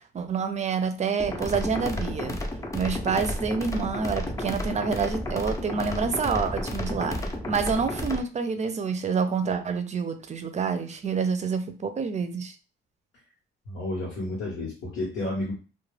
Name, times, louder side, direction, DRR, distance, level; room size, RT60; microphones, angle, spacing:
voice 1, 0.0-2.4 2.7-12.6, right 5 dB, 35° right, 9 dB, 0.5 m, -28 dB
sound 1, 1.2-8.2, left 1 dB, 15° left, 0.6 m, -32 dB
voice 2, 13.7-15.5, left 2 dB, 85° left, -6 dB, 1.1 m, -31 dB
2.4 x 2.2 x 3.2 m, 0.34 s
cardioid pair, 90°, 20 cm